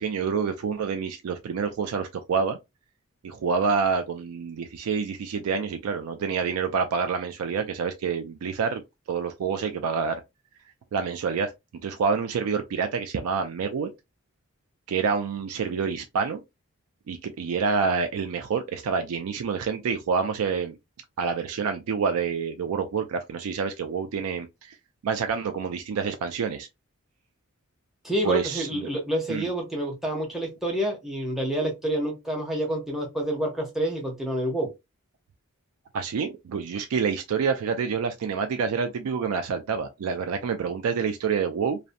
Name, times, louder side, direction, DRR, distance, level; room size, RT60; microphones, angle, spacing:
voice 1, 0.0-2.6 3.2-8.8 9.1-10.2 10.9-11.5 11.8-13.9 14.9-16.4 17.1-20.8 21.2-24.8 25.0-26.7 28.2-28.9 29.3-29.5 35.9-41.8, right 5 dB, 80° right, 0.3 m, -27 dB
voice 2, 28.0-34.7, right 1 dB, ahead, 0.7 m, -28 dB
2.6 x 2.1 x 2.5 m
head